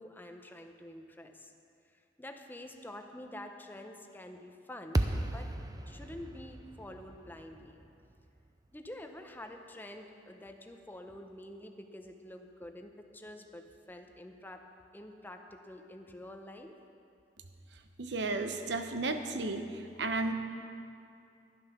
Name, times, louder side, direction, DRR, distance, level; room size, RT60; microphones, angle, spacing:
voice 1, 0.0-1.5 2.2-5.1 5.3-5.5 5.9-7.8 8.7-14.6 14.9-16.7, left 1 dB, 10° left, 5 dB, 0.8 m, -47 dB
sound 1, 4.9-9.2, right 1 dB, 20° right, 0.6 m, -36 dB
voice 2, 18.0-20.3, right 2 dB, 70° right, 7 dB, 0.9 m, -33 dB
11.0 x 11.0 x 6.1 m, 2.4 s
head